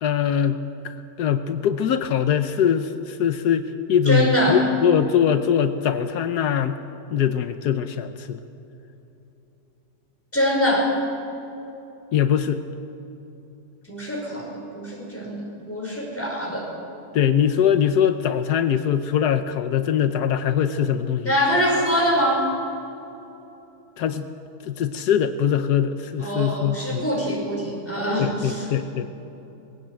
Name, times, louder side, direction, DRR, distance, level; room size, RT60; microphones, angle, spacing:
voice 1, 0.0-6.8 7.1-8.4 12.1-12.6 17.1-21.3 24.0-24.2 24.6-27.0 28.2-29.1, left 8 dB, 80° left, 9 dB, 1.4 m, -22 dB
voice 2, 4.1-4.6 10.3-10.9 13.9-16.7 21.2-22.5 26.2-28.7, equal, 10° left, -2 dB, 5.1 m, -24 dB
20.0 x 16.5 x 9.0 m, 3.0 s
omnidirectional pair, 1.7 m